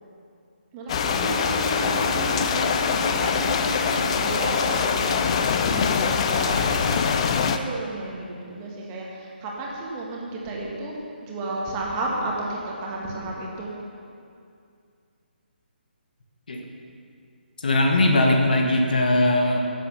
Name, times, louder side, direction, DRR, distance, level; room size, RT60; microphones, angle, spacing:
voice 1, 0.7-13.7, right 2 dB, 20° right, -3 dB, 1.8 m, -33 dB
sound 1, 0.9-7.6, left 6 dB, 30° left, 0.5 m, -23 dB
sound 2, 1.2-5.4 6.6-7.1, right 4 dB, 55° right, 0.7 m, -33 dB
voice 2, 17.6-19.6, left 1 dB, 55° left, 2 dB, 1.5 m, -20 dB
11.5 x 7.6 x 7.1 m, 2.4 s
figure-of-eight pair, 140°, 6 cm